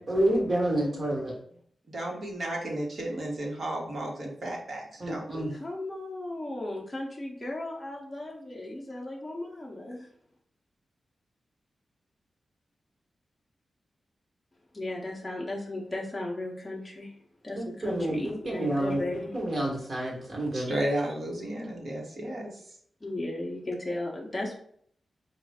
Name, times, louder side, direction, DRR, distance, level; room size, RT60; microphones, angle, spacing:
voice 1, 0.1-1.3 5.0-5.5 17.6-20.7, right 1 dB, 40° right, -3 dB, 1.3 m, -29 dB
voice 2, 1.9-5.5 20.5-22.8, right 1 dB, 55° right, -1 dB, 1.2 m, -33 dB
voice 3, 5.5-10.1 14.7-17.1 17.4-19.4 23.0-24.6, left 2 dB, 10° left, -3 dB, 0.7 m, -36 dB
5.1 x 2.4 x 3.4 m, 0.64 s
wide cardioid pair, 160°, 0 cm